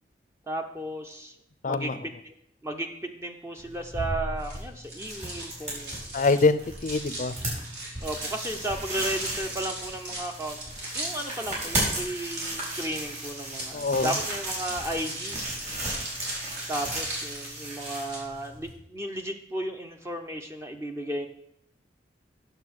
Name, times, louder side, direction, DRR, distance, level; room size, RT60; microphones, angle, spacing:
voice 1, 0.5-1.3 1.6-1.9 2.2-2.3 2.6-6.0 8.0-10.6 10.9-15.7 16.7-21.3, right 1 dB, 15° right, 4 dB, 0.7 m, -34 dB
voice 2, 1.6-2.0 6.1-7.3 13.7-14.2, left 3 dB, 45° left, 13 dB, 0.5 m, -24 dB
sound 1, 3.6-18.7, right 1 dB, 40° right, 4.4 m, -35 dB
sound 2, 4.4-18.2, right 1 dB, 70° right, 3.3 m, -39 dB
8.9 x 6.9 x 6.4 m, 0.74 s
head